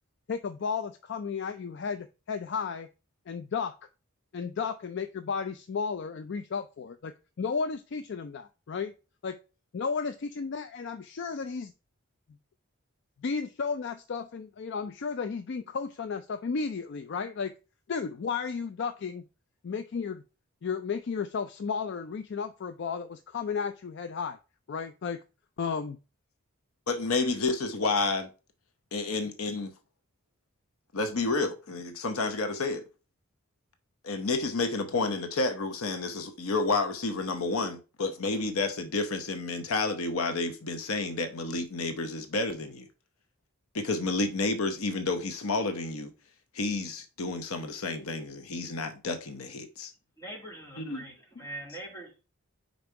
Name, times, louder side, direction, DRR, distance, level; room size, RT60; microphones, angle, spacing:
voice 1, 0.3-2.9 3.3-3.8 4.3-8.9 9.2-9.4 9.7-11.7 13.2-17.5 17.9-19.2 19.6-20.2 20.6-24.4 24.7-25.2 25.6-26.0, left 5 dB, 55° left, 0.4 m, -33 dB
voice 2, 26.9-28.3 28.9-29.7 30.9-32.8 34.0-42.8 43.7-46.1 46.5-49.9 50.8-51.0, left 3 dB, 80° left, 0.9 m, -30 dB
voice 3, 50.2-52.2, right 1 dB, 15° left, 2.0 m, -43 dB
5.2 x 4.0 x 4.5 m
head